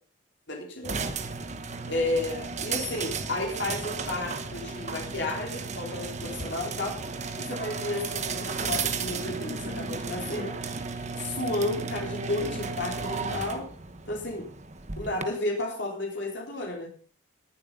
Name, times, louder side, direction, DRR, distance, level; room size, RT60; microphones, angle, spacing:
voice 1, 0.5-1.0 1.9-7.0 7.4-10.6 11.2-13.7 14.1-14.5 15.0-16.9, left 2 dB, 55° left, -1 dB, 3.8 m, -32 dB
sound 1, 0.8-15.2, right 4 dB, 35° right, 1.1 m, -34 dB
19.0 x 7.8 x 5.4 m, 0.42 s
head